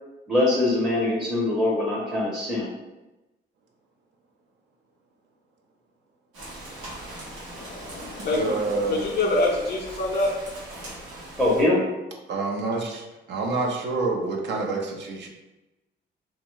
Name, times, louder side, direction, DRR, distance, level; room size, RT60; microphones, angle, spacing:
voice 1, 0.3-2.7 11.4-11.8, left 2 dB, ahead, -5 dB, 0.6 m, -23 dB
Rain, 6.3-11.6, right 1 dB, 90° right, 1.0 m, -40 dB
voice 2, 7.5-8.6 8.9-10.3, left 2 dB, 55° left, -2 dB, 0.5 m, -25 dB
voice 3, 8.2-9.0 12.3-15.3, right 3 dB, 65° right, 1 dB, 0.6 m, -27 dB
2.6 x 2.3 x 3.0 m, 1.0 s
cardioid pair, 90°, 20 cm